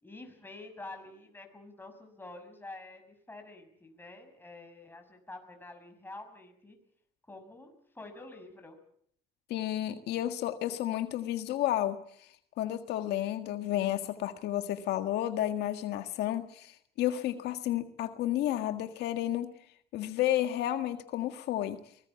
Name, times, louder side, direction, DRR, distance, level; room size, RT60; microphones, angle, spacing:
voice 1, 0.0-6.8 7.3-8.8, left 2 dB, 10° left, 5 dB, 6.2 m, -48 dB
voice 2, 9.5-12.3 12.6-19.5 19.9-21.8, left 12 dB, 80° left, 8 dB, 1.7 m, -31 dB
24.0 x 20.0 x 8.4 m, 0.65 s
cardioid pair, 110°, 17 cm